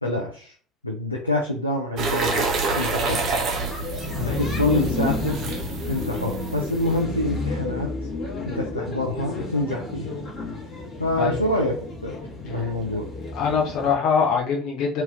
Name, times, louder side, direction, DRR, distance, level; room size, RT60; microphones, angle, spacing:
voice 1, 0.0-0.5 0.8-2.5 2.8-3.2 4.2-5.4 5.9-7.9 8.4-10.2 11.0-11.8 12.0-12.1 12.4-13.1, left 1 dB, 90° left, 0 dB, 0.4 m, -26 dB
sound 1, 2.0-7.0, right 4 dB, 45° right, 0.7 m, -28 dB
sound 2, 2.2-14.0, left 2 dB, 40° left, 1.4 m, -31 dB
voice 2, 4.1-4.4 11.2-11.4 12.5-12.7 13.3-15.0, left 6 dB, 55° left, -1 dB, 0.9 m, -24 dB
2.9 x 2.9 x 2.4 m, 0.42 s
figure-of-eight pair, 60°, 0 cm